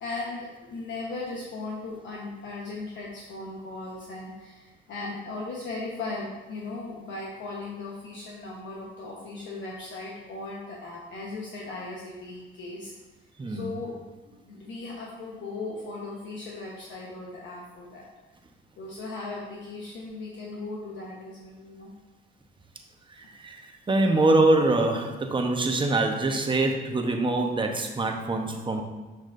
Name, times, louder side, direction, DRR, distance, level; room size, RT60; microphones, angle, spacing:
voice 1, 0.0-12.9 13.5-13.9 14.2-18.1 18.8-21.9, left 3 dB, 70° left, -4 dB, 1.1 m, -37 dB
voice 2, 13.4-13.7 23.2-28.8, right 2 dB, 25° right, 3 dB, 0.9 m, -24 dB
7.5 x 6.0 x 2.6 m, 1.3 s
cardioid pair, 90°, 20 cm